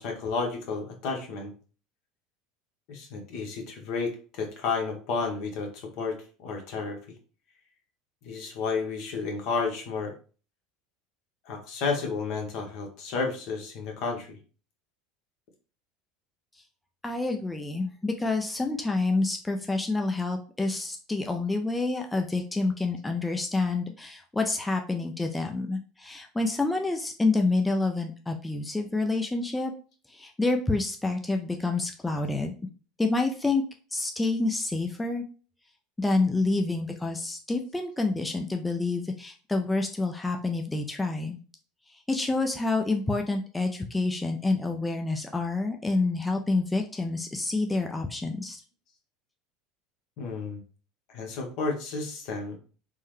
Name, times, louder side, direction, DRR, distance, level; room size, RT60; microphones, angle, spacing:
voice 1, 0.0-1.5 2.9-7.0 8.2-10.1 11.4-14.4 50.2-50.6 51.1-52.6, left 4 dB, 60° left, 2 dB, 1.0 m, -32 dB
voice 2, 17.0-29.7 30.1-32.5 33.0-33.6 33.9-35.2 36.0-41.4 41.9-48.6, left 3 dB, 10° left, 3 dB, 0.4 m, -28 dB
3.6 x 2.1 x 3.1 m, 0.37 s
supercardioid pair, 105°, 0 cm